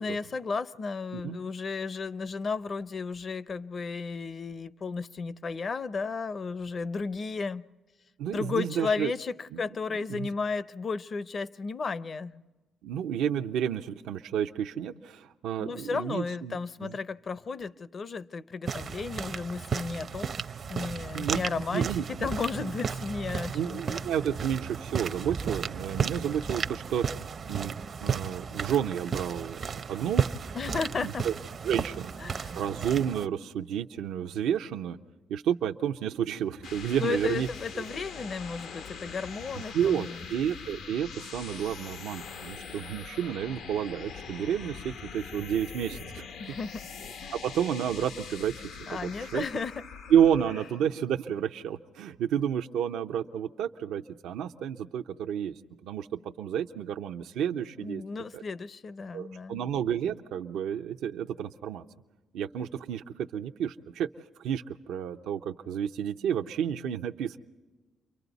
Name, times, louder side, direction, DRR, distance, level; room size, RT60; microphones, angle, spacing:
voice 1, 0.0-7.6 8.3-12.4 15.6-20.4 20.7-24.1 30.5-31.3 32.2-32.6 37.0-40.2 46.4-46.9 47.2-47.5 48.9-49.7 57.8-59.6, left 4 dB, 45° left, 0.6 m, -34 dB
voice 2, 8.2-9.1 9.5-9.6 9.9-10.3 12.8-16.9 21.1-22.3 22.6-22.7 23.5-30.5 31.0-31.3 31.6-35.0 35.3-37.5 37.7-37.8 39.7-46.2 47.3-48.5 48.9-49.4 50.1-55.5 55.8-58.0 58.3-58.4 59.1-61.8 62.3-64.1 64.4-67.4, right 9 dB, 85° right, 0.7 m, -31 dB
sound 1, 18.6-33.3, right 6 dB, 50° right, 0.6 m, -34 dB
sound 2, 36.3-50.9, left 6 dB, 80° left, 0.9 m, -43 dB
30.0 x 24.0 x 4.1 m
cardioid pair, 90°, 0 cm